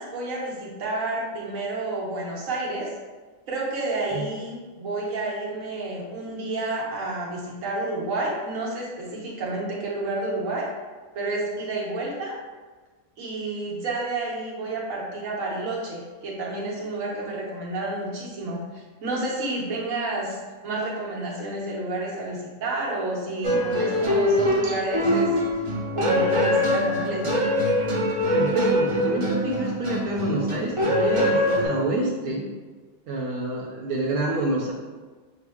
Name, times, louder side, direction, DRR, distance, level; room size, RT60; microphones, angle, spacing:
voice 1, 0.0-2.9 3.5-10.7 11.1-12.3 13.2-25.3 25.9-27.4, right 2 dB, 65° right, -4 dB, 1.3 m, -30 dB
sound 1, 23.4-31.7, left 1 dB, 40° right, 0.4 m, -23 dB
voice 2, 28.3-32.5 33.1-34.7, right 1 dB, 85° right, -3 dB, 1.1 m, -27 dB
6.0 x 2.1 x 3.4 m, 1.3 s
omnidirectional pair, 1.5 m